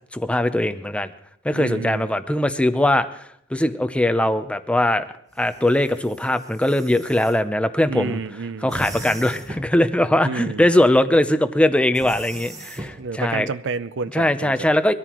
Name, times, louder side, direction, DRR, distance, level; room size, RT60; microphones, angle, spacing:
voice 1, 0.1-1.1 1.4-3.1 3.5-5.1 5.4-8.2 8.6-13.5 14.1-14.9, left 1 dB, 5° left, 0.6 m, -20 dB
voice 2, 1.5-2.1 7.9-8.8 10.2-10.7 13.0-14.7, right 4 dB, 65° right, 0.6 m, -30 dB
sound 1, 5.3-7.4 8.7-9.8 11.9-13.0, right 1 dB, 15° right, 1.2 m, -38 dB
22.0 x 14.0 x 3.0 m
head